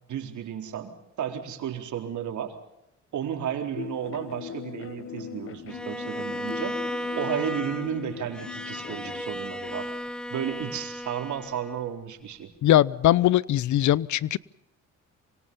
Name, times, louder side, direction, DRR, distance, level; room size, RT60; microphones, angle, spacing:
voice 1, 0.1-2.6 3.1-6.8 7.2-9.9 10.3-12.5, right 9 dB, 75° right, 4.1 m, -33 dB
sound 1, 3.8-9.2, left 9 dB, 45° left, 0.9 m, -40 dB
Bowed string instrument, 5.7-11.9, equal, 5° left, 1.5 m, -35 dB
voice 2, 12.6-14.4, left 13 dB, 70° left, 0.8 m, -21 dB
27.0 x 25.0 x 5.5 m
cardioid pair, 90°, 30 cm